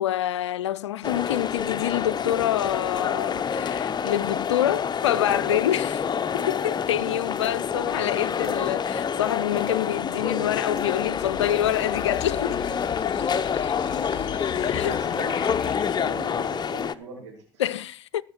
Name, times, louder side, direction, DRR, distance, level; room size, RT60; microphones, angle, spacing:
voice 1, 0.0-6.0 6.3-12.6 14.5-15.0 17.6-18.2, left 12 dB, 80° left, 0.5 m, -26 dB
sound 1, 1.0-16.9, left 7 dB, 30° left, 0.8 m, -27 dB
sound 2, 7.4-7.6 7.8-8.7 9.0-9.2 9.6-10.0 10.4-10.5 10.7-11.0 11.5-12.4 13.1-13.2, right 5 dB, 55° right, 4.7 m, -58 dB
sound 3, 10.7-16.7, left 12 dB, 45° left, 1.1 m, -38 dB
voice 2, 14.5-15.5 15.9-17.6, right 3 dB, 80° right, 3.5 m, -41 dB
19.0 x 6.6 x 4.5 m
hypercardioid pair, 65°, 15 cm